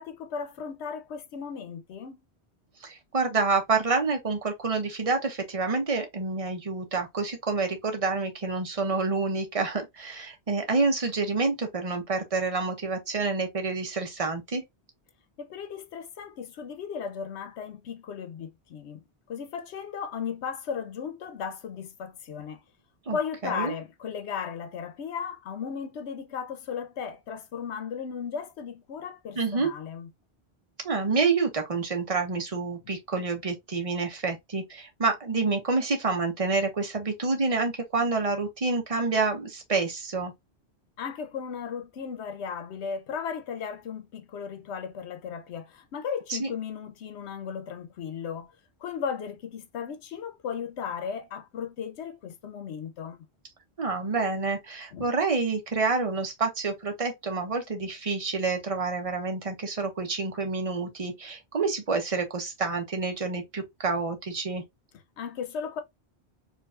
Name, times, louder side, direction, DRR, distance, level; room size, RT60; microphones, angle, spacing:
voice 1, 0.0-2.2 15.4-22.6 23.1-30.1 41.0-48.5 48.8-53.2 54.9-55.0 65.2-65.8, left 6 dB, 85° left, 1.0 m, -36 dB
voice 2, 2.8-14.6 23.1-23.2 23.4-23.7 29.4-29.7 30.8-40.3 46.3-46.5 53.8-64.6, right 4 dB, 35° right, 0.9 m, -28 dB
4.5 x 2.6 x 2.3 m
omnidirectional pair, 1.1 m